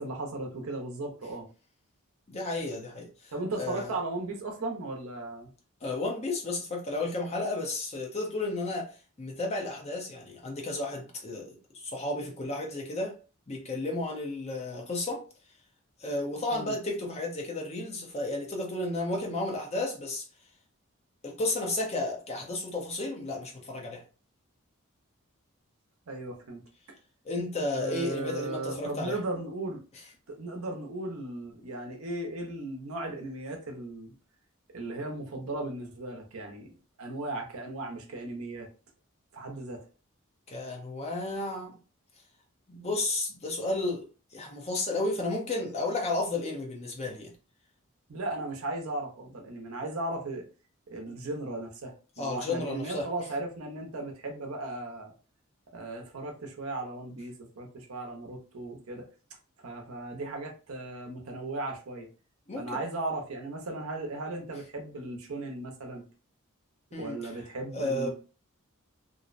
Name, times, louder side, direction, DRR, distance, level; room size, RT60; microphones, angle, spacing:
voice 1, 0.0-1.5 3.3-5.5 16.5-16.7 26.1-26.6 27.8-29.8 30.3-34.1 34.7-38.7 39.3-39.9 48.1-50.4 50.9-55.1 55.7-59.1 59.6-62.1 62.6-66.0 67.0-68.1, right 2 dB, 90° right, 0.7 m, -36 dB
voice 2, 2.3-3.9 5.8-8.9 9.2-13.1 13.5-15.2 16.0-20.2 21.2-24.0 27.2-29.2 40.5-41.7 42.7-44.0 44.3-47.3 52.2-53.1 62.5-62.8 66.9-67.3 67.7-68.1, left 2 dB, 30° left, 0.6 m, -33 dB
2.6 x 2.0 x 2.5 m
head